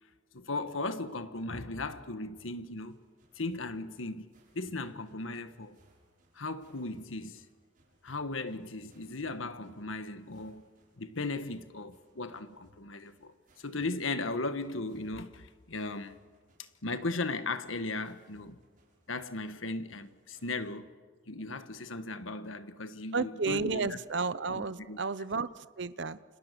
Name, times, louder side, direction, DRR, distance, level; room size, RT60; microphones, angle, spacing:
voice 1, 0.3-3.0 3.3-5.8 6.3-7.4 8.0-10.7 11.0-13.3 13.6-16.1 16.8-18.6 19.1-20.9 21.3-24.0 24.5-25.0 25.3-25.4, left 3 dB, 80° left, 1.5 m, -37 dB
sound 1, 2.3-20.7, right 1 dB, 40° right, 7.1 m, -67 dB
voice 2, 23.1-25.5 25.8-26.2, right 4 dB, 60° right, 0.8 m, -32 dB
29.5 x 26.5 x 6.9 m
head